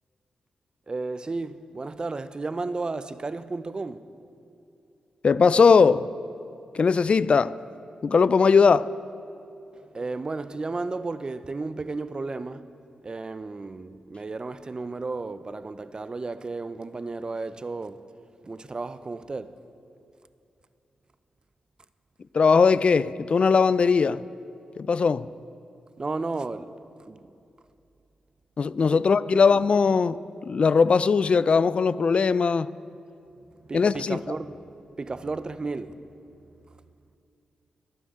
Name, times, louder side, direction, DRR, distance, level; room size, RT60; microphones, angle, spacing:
voice 1, 0.9-4.1 9.7-12.7 13.0-18.0 18.4-19.6 26.0-26.7 27.0-27.2 28.9-29.0 29.3-29.4 33.6-36.1, right 3 dB, 35° right, 0.5 m, -33 dB
voice 2, 5.2-6.1 6.7-7.6 8.0-8.9 22.3-24.2 24.8-25.3 28.6-32.7 33.7-34.2, left 5 dB, 50° left, 0.3 m, -20 dB
26.5 x 9.1 x 3.7 m
cardioid pair, 60°, 2 cm